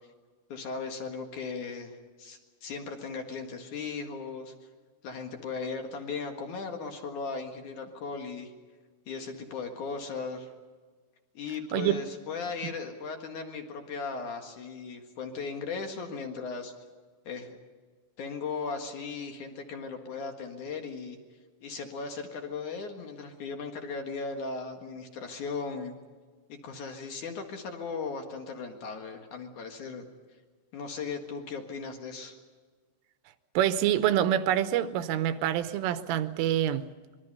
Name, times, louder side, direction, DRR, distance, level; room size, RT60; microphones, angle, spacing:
voice 1, 0.5-4.5 5.0-8.5 9.1-10.5 11.3-16.7 17.3-17.6 18.2-21.2 21.6-25.9 26.5-30.1 30.7-32.4, left 4 dB, 60° left, 2.2 m, -37 dB
voice 2, 33.6-36.9, right 11 dB, 80° right, 3.3 m, -26 dB
26.0 x 23.0 x 5.5 m
omnidirectional pair, 6.0 m